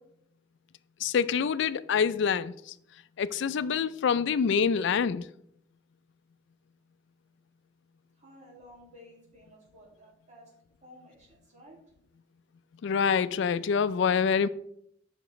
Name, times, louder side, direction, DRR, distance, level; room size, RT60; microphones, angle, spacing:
voice 1, 1.0-2.5 3.2-5.2 12.8-14.5, left 6 dB, 70° left, 0.4 m, -26 dB
voice 2, 8.2-10.4 10.8-11.8, equal, 40° right, 2.3 m, -54 dB
7.9 x 5.8 x 3.1 m
head